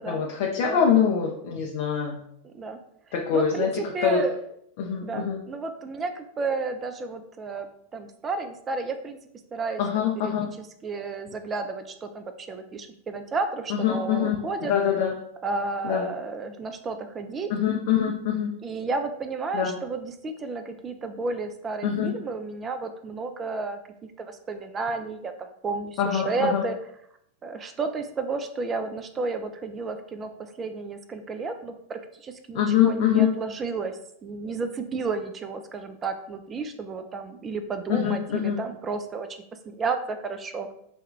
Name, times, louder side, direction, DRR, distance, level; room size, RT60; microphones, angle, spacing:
voice 1, 0.1-2.2 3.1-4.2 4.8-5.4 9.8-10.5 13.7-14.4 14.6-15.1 15.8-16.1 17.5-18.5 19.5-19.7 21.8-22.1 26.0-26.6 32.5-33.3 37.9-38.6, left 8 dB, 50° left, -1 dB, 0.5 m, -24 dB
voice 2, 2.4-2.8 3.3-4.4 5.0-9.2 9.5-14.7 15.4-17.5 18.6-23.8 24.2-26.8 27.4-40.7, right 4 dB, 20° right, 8 dB, 0.4 m, -32 dB
3.4 x 2.2 x 3.1 m, 0.72 s
figure-of-eight pair, 90°, 0 cm